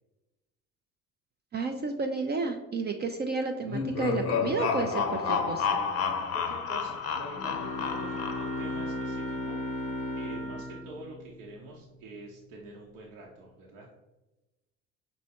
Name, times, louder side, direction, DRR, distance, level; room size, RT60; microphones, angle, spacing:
voice 1, 1.5-5.8, right 4 dB, 25° right, 5 dB, 0.4 m, -31 dB
sound 1, 3.6-8.8, left 6 dB, 35° left, 0.6 m, -30 dB
voice 2, 6.3-13.9, right 2 dB, 70° right, -2 dB, 0.9 m, -46 dB
Bowed string instrument, 7.2-12.0, left 1 dB, 80° left, 0.6 m, -36 dB
Trumpet, 7.5-10.9, right 1 dB, ahead, 0.9 m, -44 dB
5.3 x 3.0 x 2.8 m, 1.0 s
hypercardioid pair, 60°, 40 cm